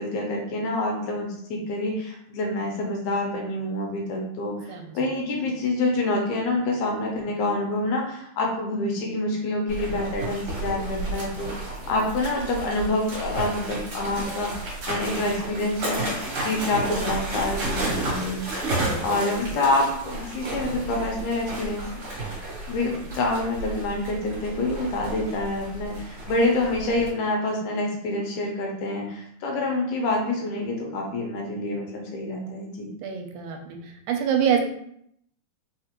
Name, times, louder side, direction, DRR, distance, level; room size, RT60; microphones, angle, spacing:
voice 1, 0.0-11.5 11.9-14.5 14.9-18.6 19.0-21.9 22.3-32.9, left 2 dB, 80° left, 0 dB, 2.1 m, -27 dB
sound 1, 9.7-27.1, right 2 dB, 55° right, 2.1 m, -32 dB
voice 2, 33.0-33.8 34.1-34.6, right 8 dB, 85° right, 2 dB, 2.0 m, -25 dB
4.8 x 2.4 x 2.9 m, 0.70 s
omnidirectional pair, 3.6 m